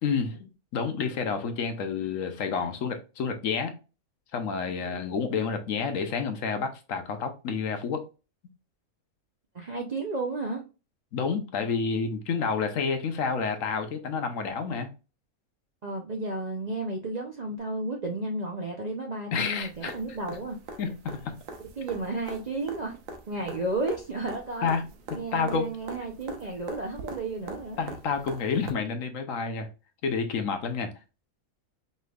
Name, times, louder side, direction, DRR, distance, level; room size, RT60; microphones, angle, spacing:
voice 1, 0.0-3.7 4.3-8.0 11.1-14.9 19.3-19.9 20.8-21.4 24.6-24.8 25.3-25.7 27.8-29.7 30.0-30.9, left 5 dB, 70° left, 1.1 m, -29 dB
voice 2, 9.5-10.6 15.8-20.6 21.8-23.0 23.3-24.7 25.1-27.8, right 2 dB, 45° right, 0.5 m, -32 dB
sound 1, 19.6-28.7 30.7-30.8, right 3 dB, 70° right, 1.1 m, -44 dB
5.4 x 3.2 x 2.3 m
omnidirectional pair, 1.5 m